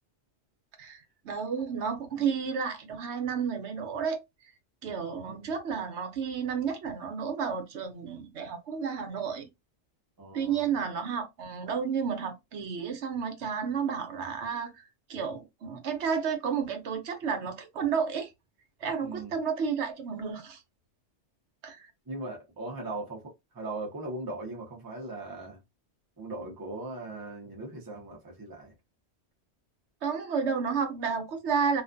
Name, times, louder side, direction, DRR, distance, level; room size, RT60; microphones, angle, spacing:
voice 1, 0.8-4.2 4.8-9.5 10.3-18.3 18.8-20.6 21.6-21.9 30.0-31.8, right 6 dB, 75° right, 0.9 m, -31 dB
voice 2, 10.2-10.8 19.0-19.4 22.1-25.6 26.2-28.7, right 2 dB, 25° right, 0.6 m, -39 dB
2.5 x 2.2 x 2.5 m
omnidirectional pair, 1.2 m